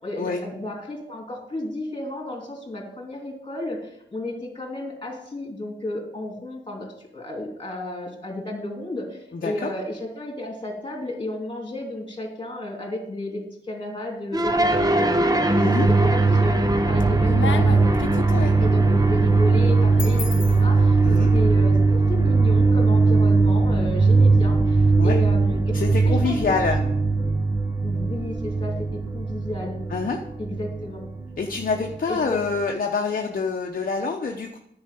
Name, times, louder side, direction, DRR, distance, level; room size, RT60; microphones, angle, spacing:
voice 1, 0.0-17.9 18.6-26.6 26.8-26.9 27.2-27.3 27.8-29.8 30.4-31.1 32.1-32.5, left 1 dB, 25° left, 0 dB, 2.8 m, -33 dB
voice 2, 9.3-9.7 15.6-15.9 18.3-18.5 21.0-21.3 25.0-25.2 25.7-26.8 29.9-30.2 31.4-34.6, left 4 dB, 50° left, 2 dB, 0.8 m, -26 dB
sound 1, 14.3-32.6, right 3 dB, 20° right, 0.7 m, -20 dB
sound 2, 15.6-16.3 16.8-21.4, left 6 dB, 90° left, 0.7 m, -34 dB
9.9 x 4.9 x 6.7 m, 0.75 s
wide cardioid pair, 115°, 19 cm